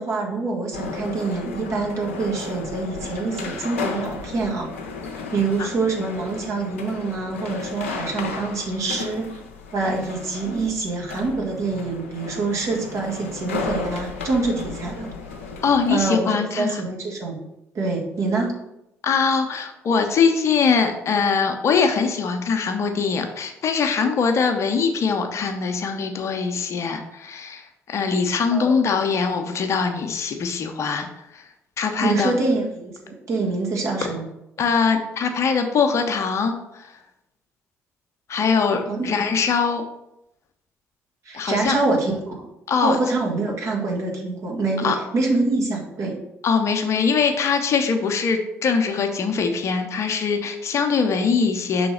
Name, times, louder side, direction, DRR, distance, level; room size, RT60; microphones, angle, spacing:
voice 1, 0.0-4.7 5.3-9.4 9.7-15.1 15.9-17.4 17.7-18.5 28.5-28.7 32.0-34.3 38.9-39.1 41.2-42.3 42.8-46.2, right 3 dB, 45° right, -2 dB, 1.5 m, -25 dB
sound 1, 0.7-16.2, left 4 dB, 80° left, 0.6 m, -34 dB
voice 2, 15.6-16.8 19.0-31.1 31.3-31.5 31.8-32.3 34.6-36.9 38.3-39.8 41.3-41.8 42.7-43.0 44.8-45.0 46.4-51.9, left 5 dB, 45° left, 5 dB, 0.8 m, -22 dB
5.8 x 3.9 x 5.0 m, 0.88 s
figure-of-eight pair, 45°, 7 cm